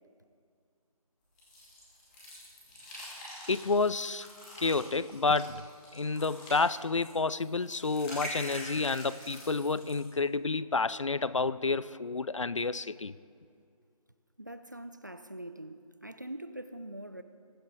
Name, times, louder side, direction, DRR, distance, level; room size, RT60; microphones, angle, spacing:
sound 1, 1.4-10.1, equal, 10° left, 2.3 m, -45 dB
voice 1, 3.5-4.3 4.6-5.6 5.9-13.1, left 3 dB, 55° left, 17 dB, 0.4 m, -30 dB
voice 2, 14.4-17.2, right 1 dB, 30° right, 11 dB, 0.4 m, -43 dB
21.5 x 9.0 x 3.8 m, 2.3 s
figure-of-eight pair, 160°, 19 cm